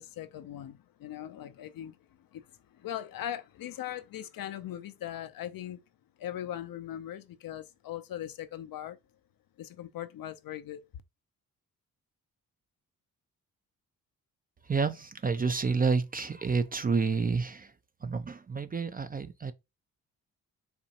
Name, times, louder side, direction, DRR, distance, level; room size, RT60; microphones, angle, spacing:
voice 1, 0.0-2.0 2.3-2.5 2.7-5.8 6.2-9.0 9.6-10.8, left 11 dB, 60° left, 0.5 m, -40 dB
voice 2, 14.6-17.7 18.0-19.5, right 4 dB, 25° right, 0.4 m, -29 dB
4.1 x 2.3 x 2.8 m
supercardioid pair, 45°, 40 cm